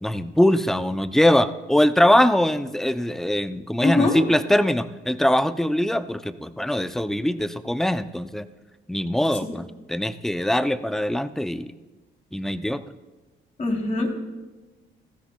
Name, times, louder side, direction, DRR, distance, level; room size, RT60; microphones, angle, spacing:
voice 1, 0.0-8.5 8.9-11.7 12.3-12.8, left 1 dB, ahead, 12 dB, 0.5 m, -22 dB
voice 2, 3.8-4.1 13.6-14.1, left 2 dB, 35° left, 1 dB, 3.1 m, -22 dB
19.0 x 14.5 x 2.3 m, 1.2 s
cardioid pair, 90°, 20 cm